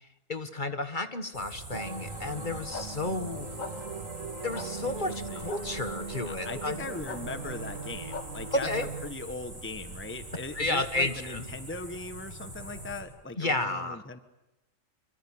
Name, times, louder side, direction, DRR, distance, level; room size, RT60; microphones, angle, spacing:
voice 1, 0.0-3.5 4.4-6.8 8.5-8.9 10.5-11.5 13.4-14.0, left 2 dB, 40° left, 9 dB, 1.6 m, -32 dB
sound 1, 1.3-13.0, right 1 dB, 50° right, 6.7 m, -43 dB
sound 2, 1.7-9.1, right 4 dB, 75° right, 2.3 m, -40 dB
sound 3, 2.7-2.9 3.6-3.7 4.5-4.7 5.5-5.6 7.1-7.2 8.1-8.3, left 4 dB, 80° left, 2.2 m, -38 dB
voice 2, 4.8-5.5 6.3-14.2, left 3 dB, 10° left, 9 dB, 1.2 m, -40 dB
26.5 x 23.5 x 8.7 m, 0.95 s
omnidirectional pair, 1.4 m